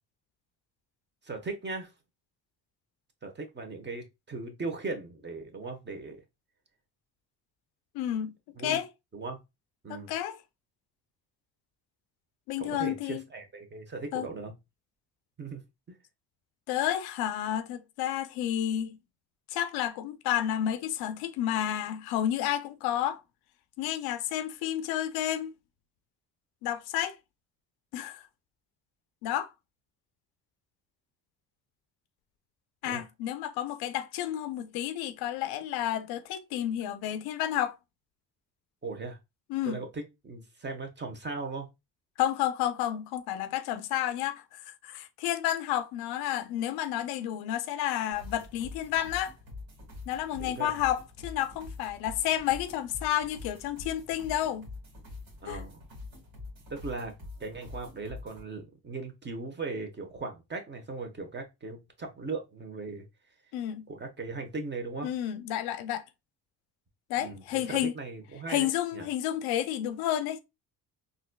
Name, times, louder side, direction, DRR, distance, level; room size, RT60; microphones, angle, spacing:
voice 1, 1.2-1.9 3.2-6.2 8.6-8.8 9.1-9.4 9.8-10.1 12.6-14.5 15.4-15.6 15.9-16.0 32.8-33.0 38.8-39.2 39.6-41.7 50.4-50.7 55.4-55.8 56.7-57.1 57.4-63.0 63.9-65.1 67.2-69.1, right 3 dB, 30° right, 1.1 m, -38 dB
voice 2, 7.9-8.3 8.6-8.9 9.9-10.4 12.5-13.2 14.1-14.3 16.7-19.0 19.5-23.2 23.8-25.5 26.6-27.2 27.9-28.3 29.2-29.5 32.8-37.8 39.5-39.8 42.2-49.3 50.1-54.7 55.5-55.6 63.5-63.9 65.0-66.0 67.1-67.9 68.5-70.4, left 11 dB, 85° left, 0.5 m, -31 dB
sound 1, 48.1-58.4, left 3 dB, 65° right, 1.9 m, -45 dB
4.0 x 2.6 x 2.2 m
supercardioid pair, 75°, 36 cm